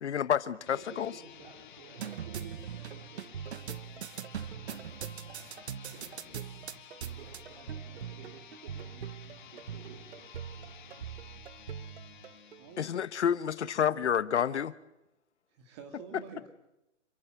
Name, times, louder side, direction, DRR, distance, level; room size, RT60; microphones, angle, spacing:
voice 1, 0.0-1.1 12.8-14.7, left 8 dB, 65° left, 16 dB, 1.3 m, -29 dB
voice 2, 0.5-3.8 4.1-6.5 6.9-9.1 9.5-11.1, right 5 dB, 40° right, 2 dB, 3.9 m, -55 dB
sound 1, 0.6-13.3, left 9 dB, 40° left, 1.9 m, -53 dB
sound 2, 2.0-12.9, right 8 dB, 65° right, 1.0 m, -42 dB
voice 3, 12.3-13.0 15.5-16.5, right 5 dB, 20° right, 6 dB, 2.1 m, -49 dB
28.0 x 14.5 x 9.1 m, 0.92 s
hypercardioid pair, 170°, 36 cm